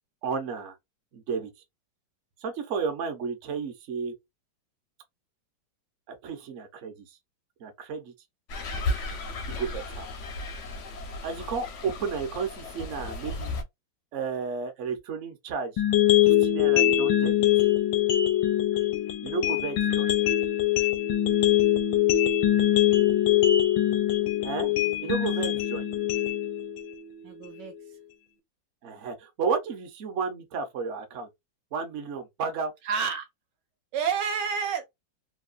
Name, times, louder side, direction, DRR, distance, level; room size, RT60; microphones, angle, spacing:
voice 1, 0.2-0.8 1.1-1.5 2.4-4.1 6.1-7.0 7.6-8.1 9.5-10.1 11.2-13.6 14.1-15.8 16.2-17.5 19.2-20.1 24.4-24.7 25.0-25.9 28.8-31.3 31.7-32.7, right 5 dB, 55° right, 0.8 m, -32 dB
sound 1, 8.5-13.6, left 2 dB, 70° left, 0.7 m, -34 dB
sound 2, 15.8-27.8, left 12 dB, 85° left, 1.3 m, -23 dB
voice 2, 27.2-27.7 32.8-33.3 33.9-34.9, right 6 dB, 75° right, 1.2 m, -29 dB
3.1 x 2.3 x 2.4 m
omnidirectional pair, 2.1 m